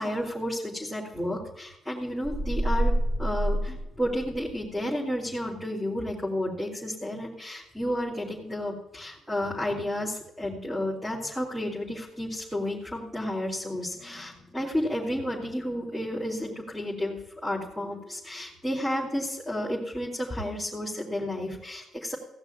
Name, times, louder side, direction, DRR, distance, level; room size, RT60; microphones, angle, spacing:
voice 1, 0.0-2.9 3.2-22.2, left 1 dB, 5° right, -5 dB, 3.7 m, -32 dB
sound 1, 2.2-4.6, right 1 dB, 35° right, 5.5 m, -27 dB
16.5 x 6.0 x 9.4 m, 0.84 s
cardioid pair, 90°, 0 cm